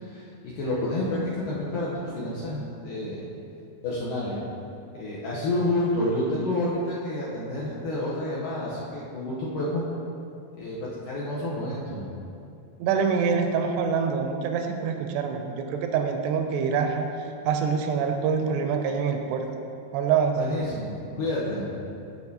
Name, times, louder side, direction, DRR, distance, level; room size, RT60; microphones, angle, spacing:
voice 1, 0.1-3.2 3.8-4.4 4.9-9.9 10.6-12.1 20.3-21.7, left 1 dB, 75° left, -7 dB, 2.0 m, -29 dB
voice 2, 12.8-19.5 19.9-20.4, right 6 dB, 85° right, 4 dB, 2.6 m, -25 dB
13.5 x 4.8 x 2.8 m, 2.6 s
omnidirectional pair, 4.8 m